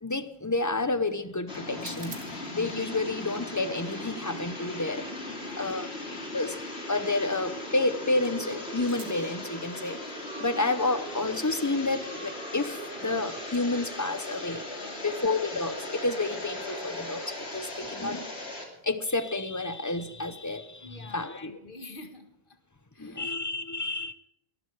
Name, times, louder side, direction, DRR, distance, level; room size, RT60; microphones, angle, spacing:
voice 1, 0.0-5.0 5.6-5.9 6.3-6.6 6.9-18.3 18.8-21.6 23.0-24.1, left 2 dB, 20° left, 11 dB, 0.7 m, -30 dB
sound 1, 1.5-18.7, left 1 dB, 75° left, 3.1 m, -38 dB
sound 2, 1.7-13.8 14.0-19.3, right 3 dB, 80° right, 2.2 m, -55 dB
voice 2, 5.3-6.0 14.5-15.2 20.8-22.6 22.9-23.3, left 3 dB, 55° left, 6 dB, 1.9 m, -48 dB
19.0 x 13.0 x 4.8 m, 0.77 s
omnidirectional pair, 1.1 m